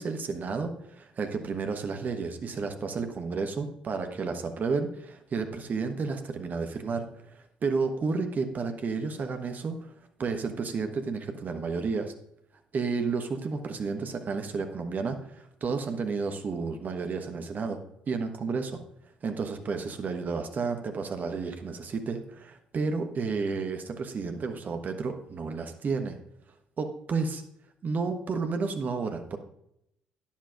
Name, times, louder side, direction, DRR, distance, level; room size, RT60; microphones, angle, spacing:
voice 1, 0.0-9.8 10.2-12.1 12.7-17.8 18.1-18.8 19.2-26.2 26.8-27.4 27.8-29.4, right 4 dB, 40° right, 6 dB, 1.2 m, -31 dB
13.0 x 10.0 x 2.5 m, 0.77 s
figure-of-eight pair, 50°, 4 cm